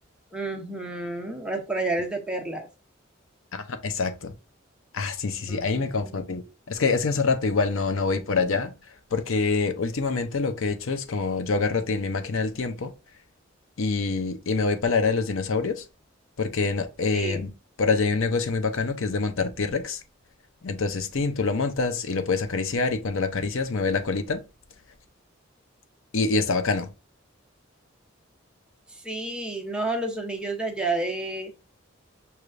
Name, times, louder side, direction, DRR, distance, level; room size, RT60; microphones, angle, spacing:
voice 1, 0.3-2.7 5.5-6.2 8.2-8.3 17.1-17.5 28.9-31.5, right 2 dB, 5° right, 0.7 m, -30 dB
voice 2, 3.5-4.3 4.9-8.7 9.1-12.9 13.8-15.8 16.4-17.5 17.8-20.0 20.6-24.4 26.1-26.9, left 4 dB, 75° left, 0.6 m, -26 dB
5.7 x 3.2 x 2.5 m
head